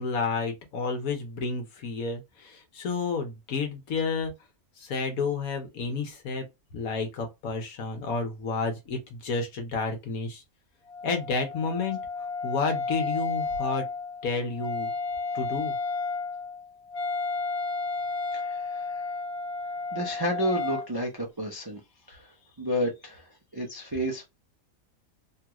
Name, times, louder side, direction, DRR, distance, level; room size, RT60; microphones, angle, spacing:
voice 1, 0.0-4.3 4.8-6.4 6.7-10.4 11.0-12.0 12.4-13.8 14.2-14.9 15.3-15.8, left 4 dB, 80° left, 1.4 m, -30 dB
Wind instrument woodwind instrument, 10.9-20.9, left 3 dB, 50° left, 1.1 m, -32 dB
voice 2, 18.3-19.0 19.9-21.8 22.1-22.3 22.6-23.2 23.5-24.2, equal, 40° right, 0.3 m, -31 dB
3.2 x 2.4 x 2.9 m
omnidirectional pair, 1.5 m